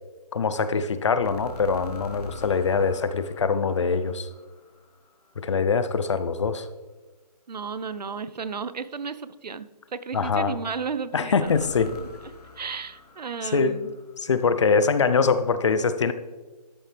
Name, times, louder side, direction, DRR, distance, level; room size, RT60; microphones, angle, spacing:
voice 1, 0.3-4.3 5.4-6.7 10.1-10.6 11.1-12.0 13.4-13.8 14.2-16.1, left 5 dB, 45° left, 12 dB, 0.6 m, -23 dB
sound 1, 1.2-5.3 11.4-14.6, left 3 dB, 70° left, 1.5 m, -44 dB
voice 2, 7.5-12.1 12.6-13.9, right 5 dB, 85° right, 15 dB, 0.6 m, -34 dB
12.5 x 7.5 x 3.3 m, 1.3 s
hypercardioid pair, 165°, 21 cm